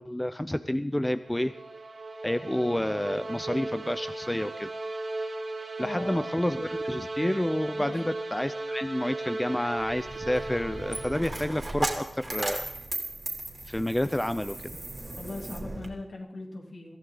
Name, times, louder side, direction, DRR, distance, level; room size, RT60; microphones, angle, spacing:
voice 1, 0.0-1.5 2.2-4.7 5.8-12.6 13.7-14.6, left 1 dB, 10° left, 11 dB, 0.6 m, -29 dB
sound 1, 1.1-11.6, right 2 dB, 65° right, 2.6 m, -36 dB
voice 2, 5.8-6.3 7.8-8.0 15.2-17.0, left 2 dB, 60° left, 1 dB, 3.2 m, -39 dB
Coin (dropping), 9.8-15.9, right 2 dB, 30° right, 2.9 m, -36 dB
23.0 x 15.0 x 4.0 m, 0.69 s
wide cardioid pair, 115°, 0 cm